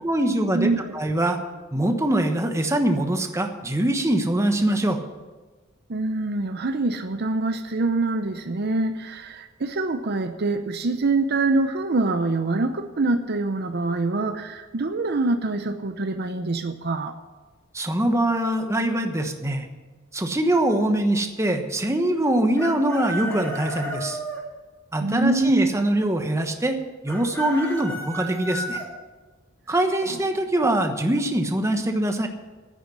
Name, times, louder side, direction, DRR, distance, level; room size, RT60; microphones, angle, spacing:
voice 1, 0.0-1.4 1.7-5.0 17.7-19.7 20.1-24.2 24.9-26.8 27.0-28.8 29.7-32.3, right 1 dB, 15° right, 6 dB, 1.1 m, -23 dB
voice 2, 0.5-0.9 5.9-17.2 25.0-25.7 30.1-30.2, right 2 dB, 50° right, 8 dB, 0.7 m, -25 dB
Chicken rooster, 22.6-24.4 27.1-28.9, equal, 10° left, 2.9 m, -32 dB
10.0 x 9.3 x 10.0 m, 1.3 s
head